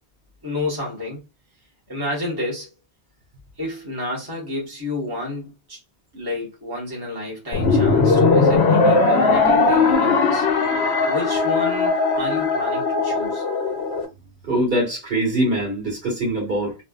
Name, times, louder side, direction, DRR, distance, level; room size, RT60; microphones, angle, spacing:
voice 1, 0.4-1.2 1.9-2.7 3.6-5.8 6.1-10.5 11.1-13.4, left 2 dB, 20° right, 1.3 m, -30 dB
sound 1, 7.5-14.1, left 3 dB, 85° left, 1.1 m, -18 dB
voice 2, 14.4-16.8, right 1 dB, 65° right, 2.0 m, -23 dB
3.3 x 2.5 x 2.3 m
omnidirectional pair, 1.1 m